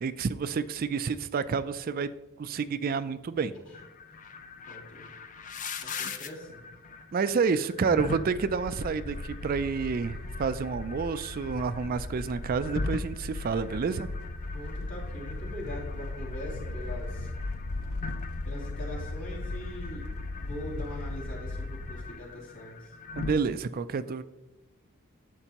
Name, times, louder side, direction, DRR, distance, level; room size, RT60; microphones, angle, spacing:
voice 1, 0.0-2.1 2.4-3.5 7.1-14.1 23.2-24.2, right 5 dB, 45° right, 14 dB, 0.3 m, -29 dB
sound 1, 3.7-23.3, left 3 dB, 35° left, 0.6 m, -42 dB
voice 2, 4.7-5.1 5.8-6.7 14.5-17.3 18.4-20.1 20.4-22.9, equal, 65° left, -6 dB, 3.3 m, -42 dB
sound 2, 8.3-22.1, left 2 dB, 90° left, 0.6 m, -37 dB
11.0 x 7.9 x 2.9 m, 1.0 s
head